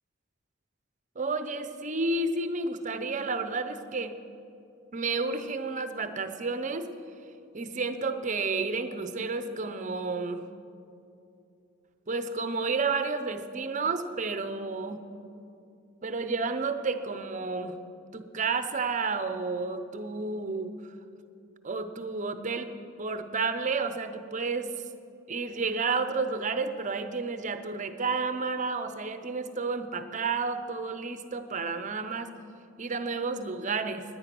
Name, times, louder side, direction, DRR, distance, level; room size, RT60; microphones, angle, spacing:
voice 1, 1.2-4.1 4.9-6.9 7.5-10.5 12.1-15.0 16.0-17.8 18.1-20.9 21.6-22.7 23.0-24.7 25.3-32.3 32.8-34.0, right 4 dB, 35° right, 10 dB, 0.7 m, -31 dB
17.0 x 10.5 x 6.1 m, 2.6 s
head